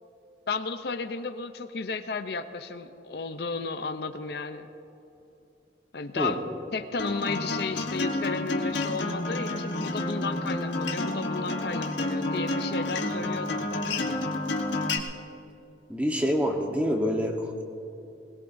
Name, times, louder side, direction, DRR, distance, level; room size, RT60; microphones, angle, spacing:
voice 1, 0.5-4.7 5.9-6.4 6.7-14.3, left 4 dB, 60° left, 9 dB, 0.5 m, -33 dB
Acoustic guitar, 7.0-15.0, left 2 dB, 80° left, 1.4 m, -30 dB
voice 2, 15.9-17.6, equal, 10° right, 2 dB, 1.1 m, -26 dB
21.0 x 20.0 x 2.6 m, 2.9 s
head